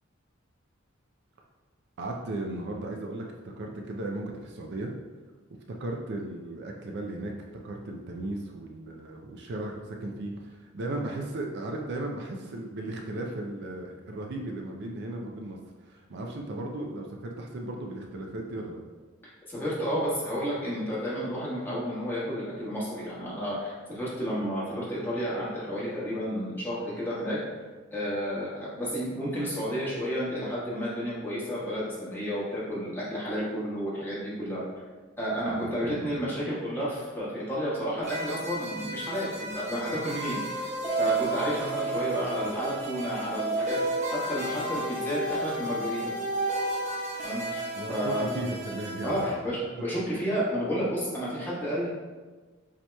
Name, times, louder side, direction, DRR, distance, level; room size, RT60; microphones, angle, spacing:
voice 1, 2.0-4.9 5.7-7.3 7.6-18.8 35.4-36.1 47.8-49.4, right 2 dB, 55° right, 1 dB, 0.4 m, -36 dB
voice 2, 19.5-27.4 27.9-34.6 35.2-40.7 41.0-46.1 47.2-47.6 47.9-48.2 49.0-51.9, equal, 10° left, -8 dB, 1.3 m, -31 dB
sound 1, 38.0-49.3, right 2 dB, 35° right, 0.9 m, -32 dB
7.2 x 2.9 x 2.2 m, 1.3 s
head